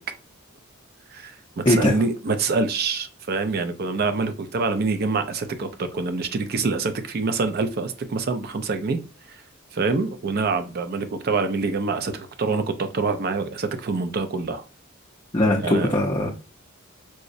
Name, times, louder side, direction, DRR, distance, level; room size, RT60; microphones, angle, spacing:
voice 1, 1.1-9.0 9.3-9.4 9.7-14.6 15.6-15.9, right 4 dB, 45° right, 0.4 m, -26 dB
voice 2, 15.3-16.3, left 1 dB, 20° left, 0.5 m, -20 dB
4.8 x 2.0 x 2.6 m
head